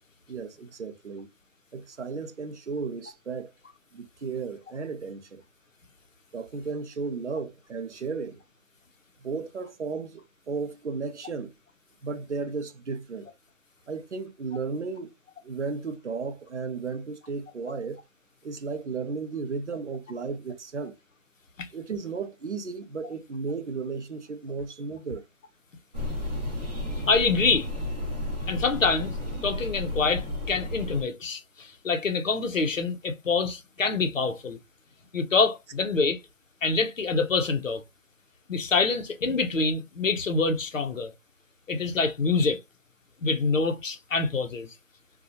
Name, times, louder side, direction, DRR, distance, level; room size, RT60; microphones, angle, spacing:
voice 1, 0.3-1.3 1.7-3.5 3.9-5.4 6.3-8.4 9.2-11.5 12.0-13.3 13.9-15.1 15.4-18.0 18.4-20.9 21.7-25.2, right 4 dB, 55° right, 0.5 m, -34 dB
sound 1, 25.9-31.0, left 1 dB, 25° right, 0.9 m, -32 dB
voice 2, 26.9-27.7 28.5-29.1 29.4-34.6 35.1-36.2 36.6-37.8 38.5-41.1 41.7-42.6 43.2-44.7, left 4 dB, 60° left, 0.7 m, -26 dB
2.6 x 2.3 x 2.6 m
figure-of-eight pair, 175°, 44 cm